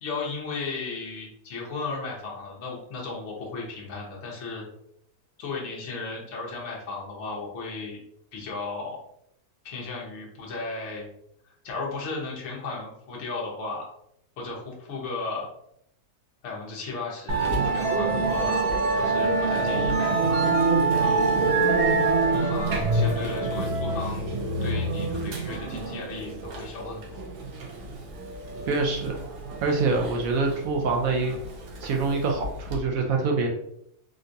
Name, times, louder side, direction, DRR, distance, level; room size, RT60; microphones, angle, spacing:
voice 1, 0.0-4.6 5.4-8.0 8.3-9.0 9.6-11.1 11.6-13.9 14.4-15.5 16.4-20.5 21.0-21.4 22.3-24.3 24.6-27.3, left 3 dB, 55° left, -3 dB, 1.1 m, -35 dB
Musical instrument, 17.3-32.8, right 3 dB, 90° right, 1.3 m, -26 dB
voice 2, 28.7-29.1 29.6-31.3 31.8-33.5, right 3 dB, 70° right, 1 dB, 0.9 m, -25 dB
3.7 x 2.3 x 2.6 m, 0.72 s
omnidirectional pair, 1.6 m